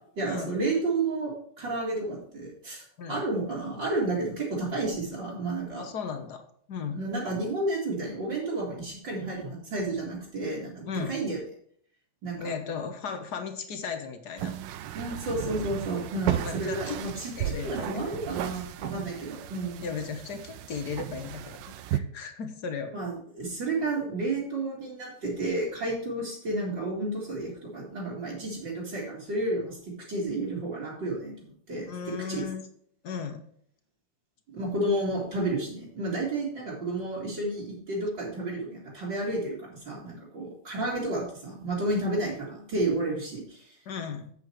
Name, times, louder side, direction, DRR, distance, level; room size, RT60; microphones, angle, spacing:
voice 1, 0.2-5.9 6.9-11.4 12.2-12.5 14.9-19.8 22.9-32.4 34.5-43.8, right 2 dB, 60° right, -4 dB, 3.0 m, -31 dB
voice 2, 5.8-7.0 10.9-11.1 12.4-14.6 16.3-17.0 17.4-18.2 19.8-22.9 31.9-32.6 33.0-33.4 43.9-44.3, left 6 dB, 55° left, 7 dB, 1.5 m, -36 dB
sound 1, 14.4-22.0, right 11 dB, 75° right, 1.2 m, -35 dB
8.0 x 7.8 x 4.6 m, 0.62 s
omnidirectional pair, 2.3 m